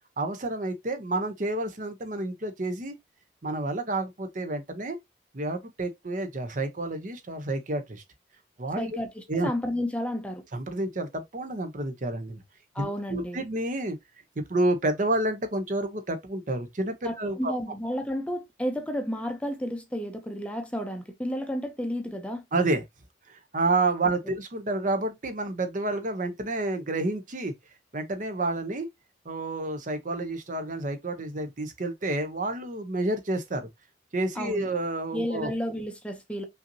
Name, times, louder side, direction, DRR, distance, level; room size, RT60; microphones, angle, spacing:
voice 1, 0.2-3.0 3.4-5.0 5.3-8.0 8.6-9.0 9.3-9.5 10.5-12.4 12.8-14.0 14.4-17.5 22.5-22.8 23.3-27.5 27.9-28.9 29.3-33.7 34.1-35.5, right 2 dB, 45° right, 0.8 m, -29 dB
voice 2, 8.8-10.4 12.7-13.4 17.0-22.4 24.3-24.4 34.4-34.7 35.1-36.4, equal, 5° left, 0.6 m, -32 dB
5.6 x 2.7 x 2.7 m
head